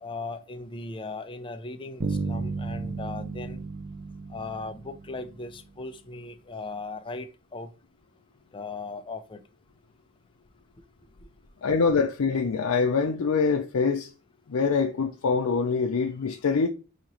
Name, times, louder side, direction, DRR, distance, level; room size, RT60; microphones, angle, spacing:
voice 1, 0.0-3.6 4.3-7.7 8.5-9.4, left 3 dB, 25° left, 0.5 m, -38 dB
sound 1, 2.0-5.7, right 3 dB, 35° right, 0.5 m, -34 dB
voice 2, 11.6-14.1 14.5-16.7, left 5 dB, 80° left, 0.5 m, -24 dB
5.1 x 2.8 x 3.0 m
head